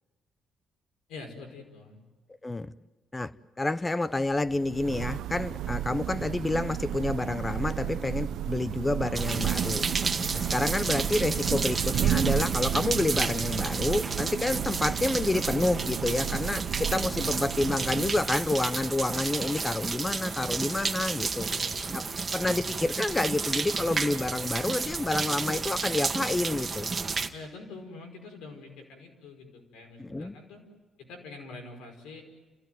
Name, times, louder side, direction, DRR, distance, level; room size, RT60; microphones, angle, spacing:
voice 1, 1.1-2.0 21.5-21.7 22.0-22.6 27.3-30.6 31.0-32.2, left 3 dB, 90° left, 5.2 m, -45 dB
voice 2, 2.4-2.7 3.1-9.8 10.3-21.5 21.9-22.0 22.3-26.9 30.0-30.3, left 2 dB, 20° left, 0.8 m, -29 dB
Thunder / Rain, 4.3-18.7, right 11 dB, 80° right, 0.9 m, -32 dB
sound 1, 9.1-27.3, right 4 dB, 30° right, 1.9 m, -32 dB
30.0 x 16.5 x 9.3 m
cardioid pair, 90°, 0 cm